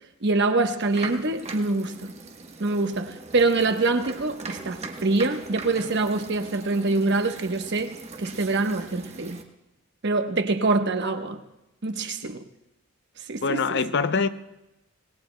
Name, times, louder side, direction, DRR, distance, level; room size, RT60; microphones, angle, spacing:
voice 1, 0.2-2.1 2.6-9.4 10.0-11.4 11.8-12.4 13.3-13.6, right 3 dB, 55° right, 1.0 m, -25 dB
sound 1, 0.8-9.4, right 3 dB, 30° right, 1.3 m, -40 dB
voice 2, 13.4-14.3, left 4 dB, 55° left, 0.6 m, -24 dB
26.0 x 20.0 x 2.2 m
head